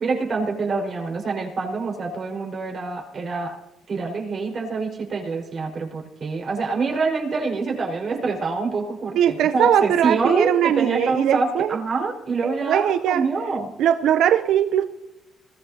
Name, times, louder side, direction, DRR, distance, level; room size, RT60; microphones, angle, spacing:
voice 1, 0.0-3.6 3.9-13.7, right 4 dB, 50° right, 0 dB, 4.9 m, -26 dB
voice 2, 9.1-11.8 12.4-13.2 13.8-14.8, right 10 dB, 80° right, 10 dB, 0.6 m, -20 dB
21.5 x 14.5 x 2.8 m, 0.97 s
cardioid pair, 90°, 0 cm